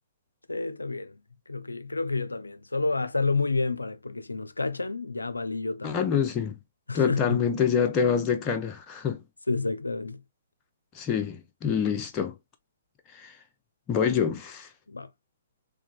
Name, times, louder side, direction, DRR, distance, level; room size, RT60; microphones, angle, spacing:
voice 1, 0.5-1.2 1.5-6.0 6.9-7.4 9.5-10.2 14.9-15.1, left 3 dB, 85° left, 0.4 m, -29 dB
voice 2, 5.8-6.6 6.9-9.2 10.9-12.3 13.1-13.4 13.9-14.7, left 7 dB, 25° left, 0.6 m, -26 dB
3.5 x 3.2 x 2.4 m
figure-of-eight pair, 120°, 0 cm